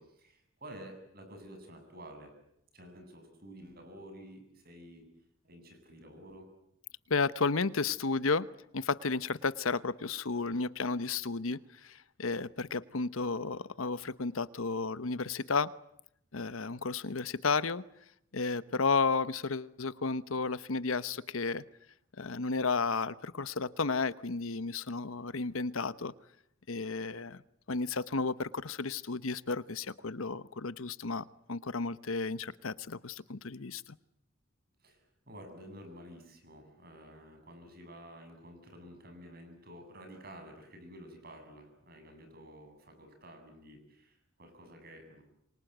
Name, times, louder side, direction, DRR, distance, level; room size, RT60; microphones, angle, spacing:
voice 1, 0.0-2.3 2.7-5.1 5.4-6.5 34.8-45.2, equal, 50° right, 5 dB, 7.8 m, -51 dB
voice 2, 7.1-8.5 8.7-15.7 16.3-17.8 18.3-21.6 22.2-26.1 26.7-27.4 27.7-33.8, left 4 dB, 80° left, 16 dB, 1.0 m, -33 dB
28.0 x 24.5 x 8.1 m, 0.78 s
head